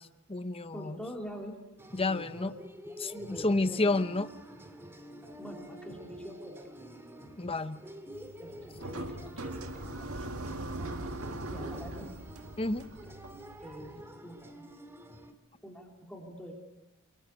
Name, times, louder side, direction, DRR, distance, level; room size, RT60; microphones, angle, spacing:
voice 1, 0.0-1.0 1.9-2.5 3.0-4.3 7.4-7.8 12.6-12.9, left 2 dB, 25° left, 11 dB, 0.9 m, -30 dB
voice 2, 0.7-1.5 2.1-2.5 2.9-3.8 5.4-6.8 8.4-10.5 11.5-12.1 13.6-13.9 14.2-14.6 15.6-16.5, equal, 5° left, 0 dB, 3.5 m, -45 dB
sound 1, 1.8-15.3, equal, 10° right, 1.9 m, -48 dB
sound 2, 8.1-14.0, right 1 dB, 80° right, 2.0 m, -41 dB
29.0 x 22.5 x 8.2 m, 0.97 s
head